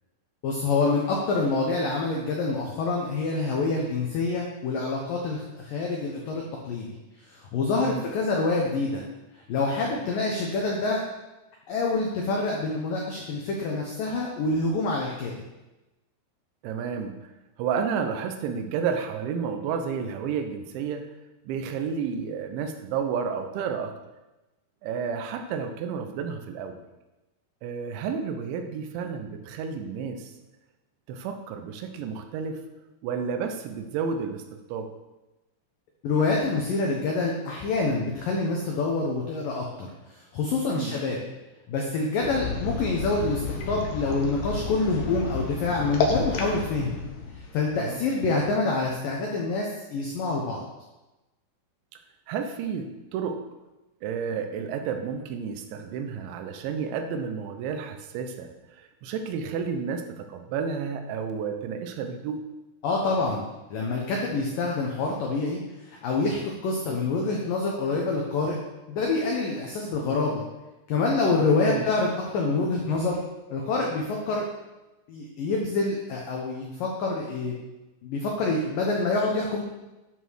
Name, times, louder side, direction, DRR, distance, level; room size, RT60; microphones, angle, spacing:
voice 1, 0.4-6.9 7.5-9.0 9.5-11.0 11.7-15.3 36.0-39.9 40.3-41.2 41.7-43.4 43.7-47.0 47.5-50.6 62.8-63.4 63.7-65.6 65.9-68.6 68.9-70.4 70.9-73.2 73.5-74.5 75.1-77.6 78.0-79.6, left 3 dB, 90° left, -1 dB, 1.9 m, -26 dB
voice 2, 16.6-17.2 17.6-21.0 21.5-24.0 24.8-26.8 27.6-30.3 31.1-32.6 33.0-34.9 40.7-41.0 47.7-48.0 52.3-53.4 54.0-58.5 58.8-62.5 71.7-71.9, right 6 dB, 75° right, 6 dB, 3.1 m, -31 dB
sound 1, 42.2-48.0, left 4 dB, 70° left, 2.7 m, -31 dB
9.3 x 5.9 x 6.4 m, 1.0 s
omnidirectional pair, 5.7 m